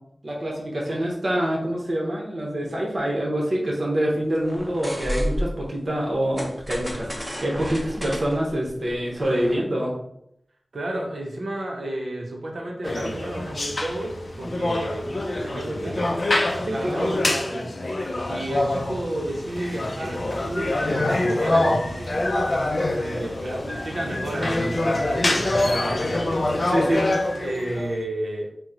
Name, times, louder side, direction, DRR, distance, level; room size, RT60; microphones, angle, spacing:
voice 1, 0.2-7.1 7.4-9.9 16.6-17.2 26.7-27.1, right 1 dB, 60° right, -2 dB, 0.9 m, -25 dB
sound 1, 4.4-5.7 6.4-9.6, equal, ahead, 0.7 m, -32 dB
voice 2, 10.7-16.1 16.7-17.7 18.3-22.2 23.0-26.1 27.4-28.5, right 1 dB, 85° right, -1 dB, 0.6 m, -32 dB
sound 2, 12.8-28.0, left 1 dB, 50° left, 0.4 m, -25 dB
2.9 x 2.1 x 3.6 m, 0.76 s
wide cardioid pair, 85°, 0 cm